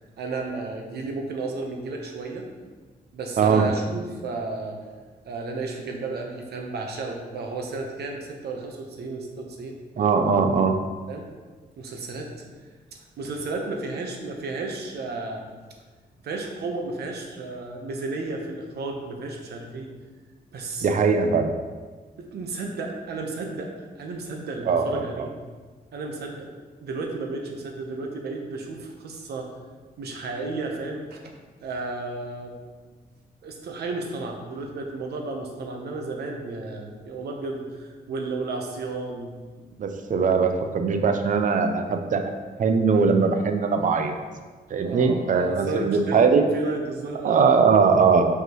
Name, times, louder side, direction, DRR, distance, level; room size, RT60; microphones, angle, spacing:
voice 1, 0.2-2.5 3.1-4.8 5.3-9.8 11.1-11.3 11.7-12.3 12.9-15.5 16.2-19.9 20.5-20.9 22.2-23.7 24.0-25.3 25.9-26.5 26.8-29.5 30.0-31.2 31.6-32.5 33.4-39.3 44.8-47.5, right 3 dB, 85° right, 2 dB, 1.0 m, -33 dB
voice 2, 3.4-3.7 10.0-10.7 20.8-21.5 24.7-25.3 39.8-44.1 44.7-46.4 47.2-48.2, right 5 dB, 50° right, 6 dB, 0.6 m, -21 dB
5.9 x 5.4 x 3.1 m, 1.4 s
cardioid pair, 120°, 16 cm